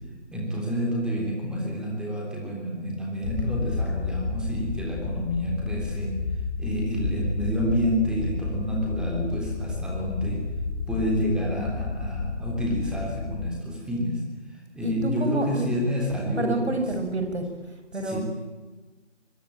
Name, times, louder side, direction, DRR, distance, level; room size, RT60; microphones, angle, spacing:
voice 1, 0.3-6.2 6.6-10.4 10.9-14.2 14.5-16.8 18.0-18.2, equal, ahead, -2 dB, 3.5 m, -28 dB
sound 1, 3.2-13.5, left 4 dB, 15° left, 1.2 m, -31 dB
voice 2, 14.8-15.7 16.4-17.4 17.9-18.2, right 2 dB, 60° right, 6 dB, 7.4 m, -28 dB
24.5 x 23.5 x 9.0 m, 1.3 s
figure-of-eight pair, 155°, 36 cm